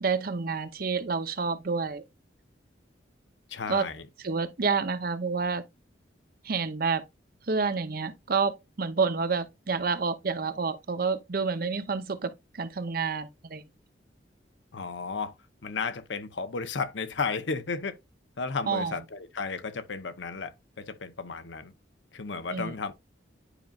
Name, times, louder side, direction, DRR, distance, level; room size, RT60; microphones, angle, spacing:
voice 1, 0.0-2.0 3.7-3.9 4.2-5.6 6.4-7.0 7.5-13.6 18.7-19.0 22.5-22.8, right 5 dB, 55° right, 0.7 m, -29 dB
voice 2, 3.5-4.0 14.7-15.3 15.6-18.0 18.4-21.7 22.1-22.9, left 4 dB, 80° left, 0.9 m, -33 dB
10.0 x 5.2 x 2.4 m
head